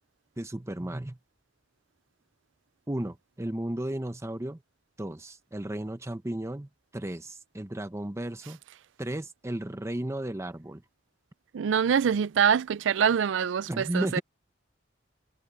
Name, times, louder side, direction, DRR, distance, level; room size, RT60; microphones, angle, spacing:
voice 1, 0.4-1.2 2.9-4.6 5.0-8.6 9.0-10.8 13.7-14.2, right 1 dB, 15° right, 0.8 m, -34 dB
voice 2, 11.5-14.2, right 7 dB, 80° right, 0.4 m, -25 dB
head